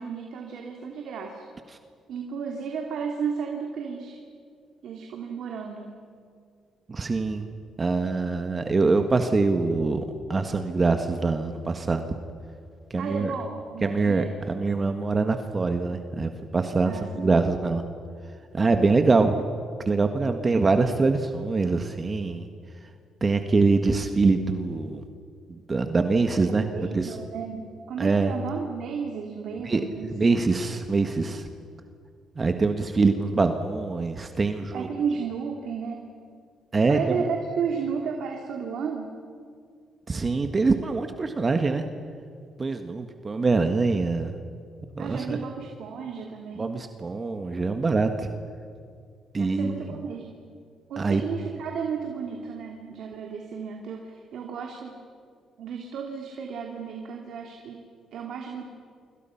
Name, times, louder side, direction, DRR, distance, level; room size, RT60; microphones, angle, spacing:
voice 1, 0.0-1.4 2.1-4.2 4.8-5.9 13.0-14.3 16.8-17.3 26.5-30.1 34.7-36.0 36.9-39.1 45.0-46.7 49.4-50.3 50.9-55.0 55.6-57.8 58.1-58.6, right 6 dB, 75° right, 1 dB, 2.8 m, -33 dB
voice 2, 6.9-7.5 7.8-12.1 12.9-13.3 13.8-17.8 18.5-19.4 19.8-22.4 23.2-25.0 25.5-26.6 26.9-27.1 28.0-28.3 29.6-29.8 30.1-31.4 32.4-34.9 36.7-37.2 40.1-41.8 42.6-44.3 44.9-45.4 46.6-48.3 49.3-49.8 51.0-51.2, right 3 dB, 30° right, 7 dB, 1.6 m, -24 dB
29.0 x 26.5 x 5.9 m, 2.3 s
cardioid pair, 90°, 0 cm